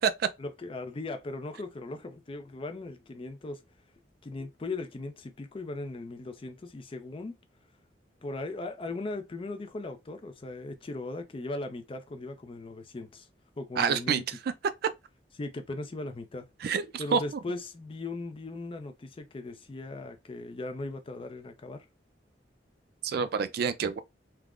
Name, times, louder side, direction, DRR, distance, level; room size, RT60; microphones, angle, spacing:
voice 1, 0.4-3.6 4.2-7.4 8.2-13.3 13.6-14.2 15.4-16.5 17.0-21.9, left 2 dB, 30° left, 0.4 m, -38 dB
voice 2, 13.8-14.5 14.8-14.9 16.6-17.4 23.0-24.0, right 6 dB, 60° right, 0.3 m, -28 dB
3.4 x 2.0 x 2.3 m
head